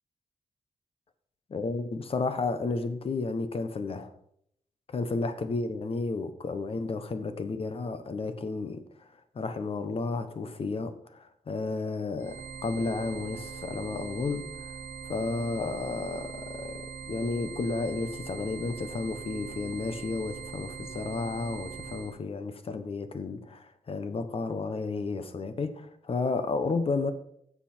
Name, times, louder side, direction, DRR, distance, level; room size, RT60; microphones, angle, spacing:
voice 1, 1.5-4.1 4.9-8.9 9.3-14.7 15.1-27.1, left 3 dB, 50° left, 1.1 m, -32 dB
sound 1, 12.2-22.2, right 6 dB, 70° right, 1.0 m, -41 dB
13.0 x 7.1 x 4.5 m
wide cardioid pair, 125°, 12 cm